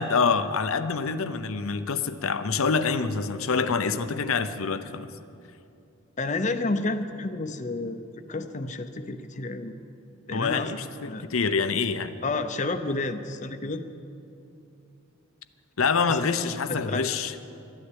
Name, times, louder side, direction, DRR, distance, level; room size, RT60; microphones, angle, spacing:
voice 1, 0.0-5.1 10.3-12.1 15.8-17.4, left 5 dB, 75° left, 11 dB, 0.7 m, -26 dB
voice 2, 6.2-9.7 10.3-11.2 12.2-13.8 16.1-16.2 16.7-17.1, left 2 dB, 35° left, 9 dB, 0.7 m, -30 dB
13.5 x 9.8 x 9.8 m, 2.6 s
head